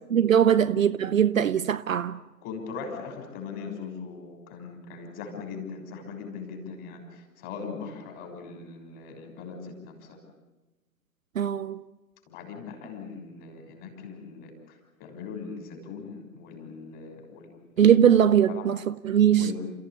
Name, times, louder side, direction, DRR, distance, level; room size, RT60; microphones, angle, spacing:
voice 1, 0.1-2.2 11.4-11.8 17.8-19.5, right 9 dB, 50° right, 0.8 m, -21 dB
voice 2, 2.4-10.2 12.3-14.5 15.0-17.9 18.5-18.7 19.4-19.5, left 5 dB, 25° left, 6.1 m, -40 dB
30.0 x 15.0 x 8.5 m
figure-of-eight pair, 130°, 49 cm